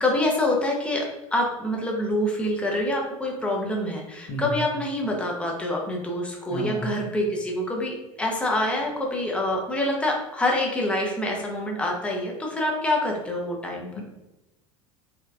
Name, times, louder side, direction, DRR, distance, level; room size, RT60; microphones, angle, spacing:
voice 1, 0.0-13.9, left 1 dB, 5° left, -1 dB, 0.7 m, -26 dB
voice 2, 6.5-6.9 14.0-14.1, equal, 50° left, 2 dB, 0.8 m, -31 dB
4.4 x 2.4 x 2.3 m, 1.0 s
figure-of-eight pair, 70°, 18 cm